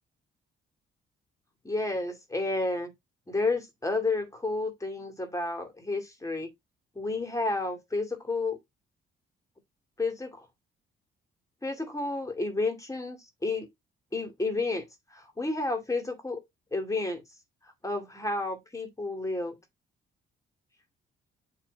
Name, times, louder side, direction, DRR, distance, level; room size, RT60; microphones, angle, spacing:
voice 1, 1.6-2.9 3.3-6.5 7.0-8.6 10.0-10.4 11.6-13.7 14.1-14.8 15.1-16.4 16.7-17.2 17.8-19.6, left 3 dB, 15° left, 2.3 m, -31 dB
7.5 x 3.4 x 3.9 m
cardioid pair, 90°, 20 cm